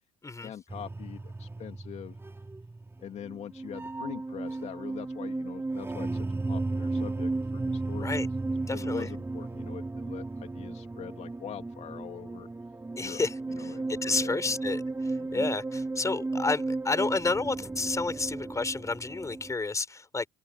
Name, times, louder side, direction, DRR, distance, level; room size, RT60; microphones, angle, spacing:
voice 1, 0.2-2.2 3.0-12.5 13.0-13.2 13.5-14.4 15.2-15.5, left 9 dB, 50° left, 2.9 m, -43 dB
sound 1, 0.7-19.5, right 3 dB, 15° right, 3.4 m, -34 dB
voice 2, 8.7-9.1 13.0-13.3 13.6-20.3, left 3 dB, 20° left, 4.2 m, -31 dB
open air
hypercardioid pair, 60°, 15 cm